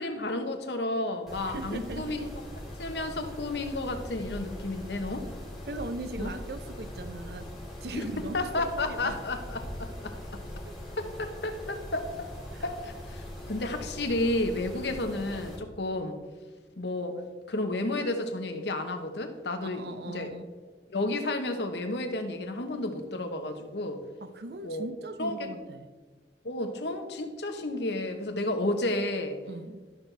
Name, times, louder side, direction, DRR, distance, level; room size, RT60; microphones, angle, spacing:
voice 1, 0.0-2.3 2.8-5.3 6.2-6.3 7.9-8.1 8.3-10.4 11.0-12.3 12.6-16.2 16.8-17.2 17.5-20.3 20.9-24.0 24.6-24.9 25.2-25.5 26.4-29.4, left 2 dB, 75° left, 6 dB, 1.0 m, -32 dB
Mechanisms, 1.3-15.6, left 1 dB, ahead, 2.8 m, -41 dB
voice 2, 1.5-2.2 5.6-7.5 7.8-9.2 12.5-12.6 14.7-14.9 19.7-20.5 24.2-25.9 29.5-29.9, right 2 dB, 60° right, 11 dB, 0.6 m, -39 dB
12.5 x 6.2 x 3.3 m, 1.4 s
head